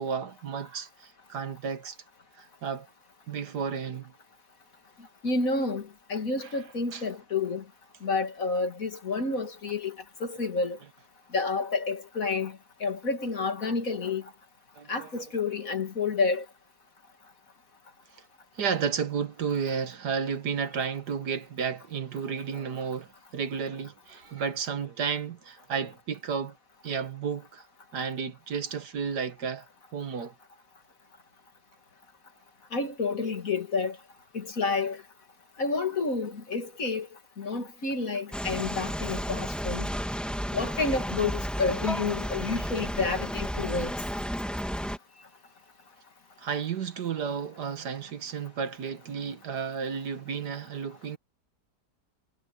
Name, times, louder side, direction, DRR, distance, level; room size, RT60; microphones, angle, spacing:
voice 1, 0.0-2.0 2.4-2.9 3.3-4.1 6.4-6.6 6.9-7.1 14.8-15.1 18.6-23.1 23.3-26.5 26.8-27.7 27.9-29.7 29.9-30.3 46.4-51.2, right 6 dB, 75° right, 2.0 m, -32 dB
voice 2, 5.2-5.8 6.1-7.6 8.0-10.0 10.2-10.8 11.3-12.5 12.8-14.2 14.9-16.4 32.7-34.0 34.3-35.0 35.6-37.1 37.4-39.9 40.5-44.0, left 4 dB, 55° left, 2.7 m, -29 dB
sound 1, 38.3-45.0, equal, ahead, 2.4 m, -32 dB
omnidirectional pair, 1.8 m